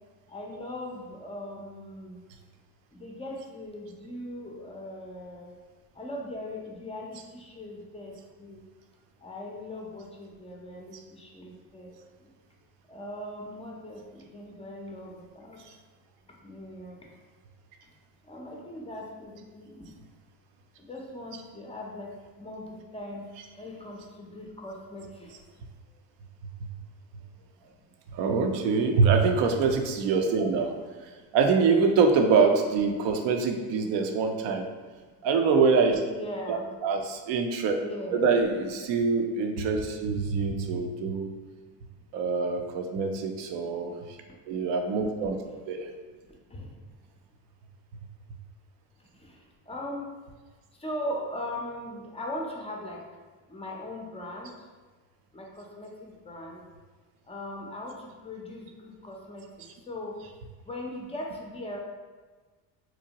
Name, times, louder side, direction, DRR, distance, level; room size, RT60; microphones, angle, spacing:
voice 1, 0.3-2.2 2.9-5.5 5.9-8.6 9.2-12.3 12.9-15.6 16.4-17.0 18.3-19.9 20.8-22.1 22.4-25.4 36.1-36.7 37.8-38.2 46.3-46.7 49.0-50.2 50.8-53.1 53.5-54.5 55.3-56.6 57.3-60.2 60.6-61.8, left 1 dB, 15° left, -1 dB, 0.4 m, -39 dB
voice 2, 28.1-30.7 31.3-34.7 35.2-36.0 36.5-37.8 38.1-41.3 42.1-43.9 44.5-45.4 45.7-45.9, right 4 dB, 65° right, 4 dB, 0.6 m, -24 dB
2.9 x 2.1 x 2.8 m, 1.4 s
hypercardioid pair, 65°, 49 cm